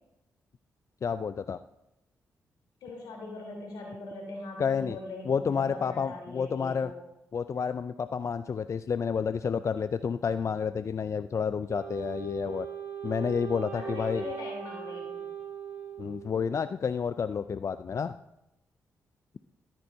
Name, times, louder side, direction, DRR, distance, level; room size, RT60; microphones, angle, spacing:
voice 1, 1.0-1.6 4.6-5.0 5.3-6.9 7.3-12.7 13.0-14.2 16.0-18.1, left 6 dB, 50° left, 12 dB, 0.4 m, -30 dB
voice 2, 2.8-7.0 13.7-15.3, left 2 dB, 85° left, 0 dB, 3.5 m, -41 dB
Wind instrument woodwind instrument, 11.7-16.7, right 7 dB, 75° right, 2.2 m, -39 dB
13.5 x 8.9 x 2.7 m, 0.88 s
supercardioid pair, 50°, 7 cm